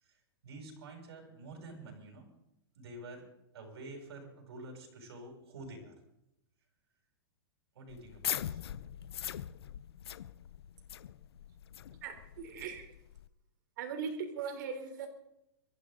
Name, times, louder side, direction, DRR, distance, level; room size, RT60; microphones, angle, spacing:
voice 1, 0.4-2.3 2.8-3.3 3.5-6.0 7.7-8.6, right 2 dB, 85° right, 1 dB, 7.5 m, -48 dB
sound 1, 7.9-13.3, left 10 dB, 80° left, 0.8 m, -41 dB
voice 2, 11.9-13.0 13.8-15.1, right 6 dB, 50° right, 7 dB, 3.7 m, -40 dB
24.0 x 14.5 x 4.0 m, 0.82 s
supercardioid pair, 165°, 13 cm